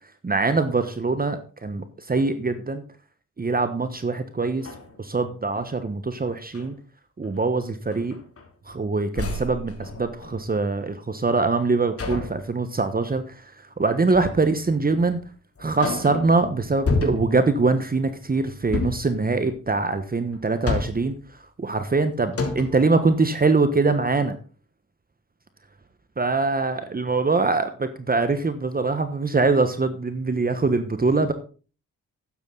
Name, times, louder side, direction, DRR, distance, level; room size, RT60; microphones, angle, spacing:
voice 1, 0.0-2.8 3.4-6.8 7.2-8.2 8.6-15.2 15.6-24.4 26.2-31.3, right 3 dB, 30° right, 10 dB, 1.3 m, -23 dB
sound 1, 3.9-4.0 4.5-5.7 6.3-6.7 7.2-7.4 7.9-8.8 9.1-10.7 12.0-12.5 14.1-14.5 15.0-15.1 15.6-16.4 16.8-17.5 18.6-19.1 20.3-21.2 21.9-22.0 22.3-22.9, left 3 dB, 45° left, 3.1 m, -30 dB
12.0 x 9.9 x 4.0 m, 0.37 s
cardioid pair, 65°, 31 cm